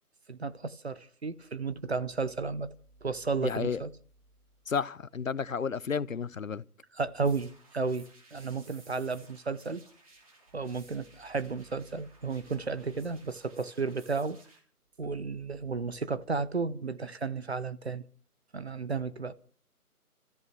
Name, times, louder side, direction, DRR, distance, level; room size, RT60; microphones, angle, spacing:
voice 1, 0.3-2.7 3.0-3.9 6.9-9.8 10.5-14.4 15.0-18.0 18.5-19.3, right 4 dB, 45° right, 0.8 m, -33 dB
voice 2, 3.4-3.8 4.7-6.6, left 6 dB, 60° left, 0.7 m, -32 dB
sound 1, 7.2-14.6, right 2 dB, 20° right, 3.0 m, -58 dB
29.0 x 14.0 x 3.1 m
figure-of-eight pair, 165°, 46 cm